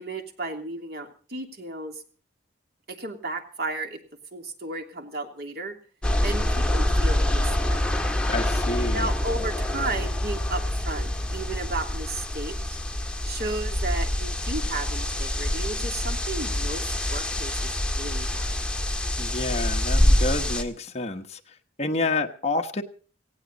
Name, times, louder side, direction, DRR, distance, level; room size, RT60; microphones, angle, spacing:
voice 1, 0.0-2.0 2.9-4.0 4.3-5.7 6.2-7.8 8.9-12.8 13.3-18.6 21.9-22.1, right 2 dB, 60° right, 4 dB, 3.0 m, -34 dB
sound 1, 6.0-20.6, left 1 dB, 5° left, 1.6 m, -26 dB
voice 2, 8.3-9.1 19.2-21.4 21.8-22.8, left 2 dB, 35° left, 3 dB, 1.3 m, -29 dB
18.5 x 16.0 x 4.1 m, 0.40 s
head